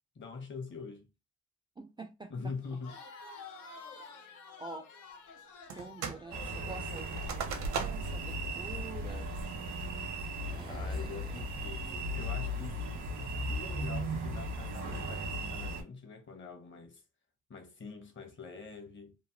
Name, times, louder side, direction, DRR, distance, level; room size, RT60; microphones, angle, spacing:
voice 1, 0.1-1.1 2.3-3.0 10.7-12.8 13.2-17.0 17.5-19.2, left 4 dB, 40° left, 0.9 m, -44 dB
voice 2, 1.8-2.5 4.6-4.9 5.8-9.3 10.5-11.5, right 3 dB, 15° right, 0.3 m, -47 dB
Crowd, 2.6-7.6, left 4 dB, 85° left, 0.8 m, -50 dB
sound 1, 5.7-6.3 6.5-8.2 8.7-8.8 9.3-9.7 10.2-10.6, right 6 dB, 70° right, 0.7 m, -39 dB
sound 2, 6.3-15.8, equal, 85° right, 1.2 m, -37 dB
3.2 x 2.1 x 2.7 m
cardioid pair, 90°, 30 cm